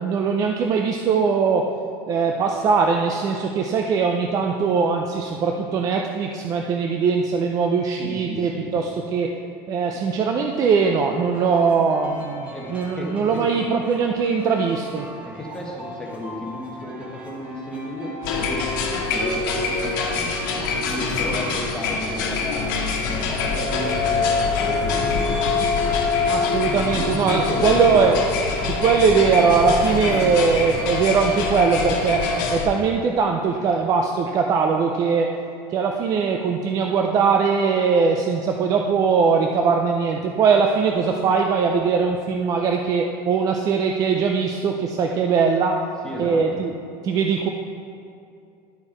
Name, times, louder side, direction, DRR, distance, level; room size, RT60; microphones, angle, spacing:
voice 1, 0.0-1.7 2.1-9.4 9.7-15.1 26.3-28.2 28.6-32.3 32.5-35.3 35.7-45.9 46.2-46.7 47.0-47.5, right 5 dB, 30° right, 2 dB, 0.4 m, -21 dB
voice 2, 8.0-8.7 12.5-13.4 15.2-25.5 26.7-28.0 46.0-46.4, left 1 dB, 5° left, -3 dB, 1.3 m, -34 dB
sound 1, 10.3-18.4, equal, 10° right, 1.3 m, -42 dB
sound 2, 18.2-32.7, left 4 dB, 80° left, 1.4 m, -24 dB
11.5 x 4.5 x 4.4 m, 2.5 s
cardioid pair, 150°, 11 cm